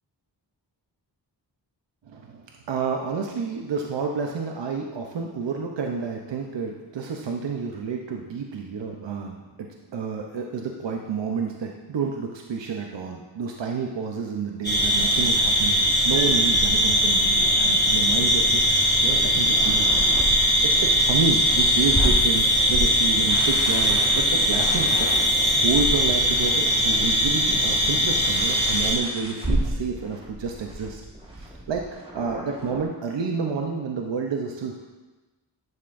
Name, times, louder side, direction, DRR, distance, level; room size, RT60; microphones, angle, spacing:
voice 1, 2.1-19.9 20.2-25.1 25.6-31.0 31.3-31.8 32.1-34.9, right 5 dB, 80° right, 1 dB, 0.8 m, -30 dB
sound 1, 14.6-29.0, equal, 20° left, 2.1 m, -20 dB
sound 2, 18.9-32.8, right 1 dB, 15° right, 1.6 m, -34 dB
10.5 x 6.6 x 2.6 m, 1.2 s
cardioid pair, 60°, 43 cm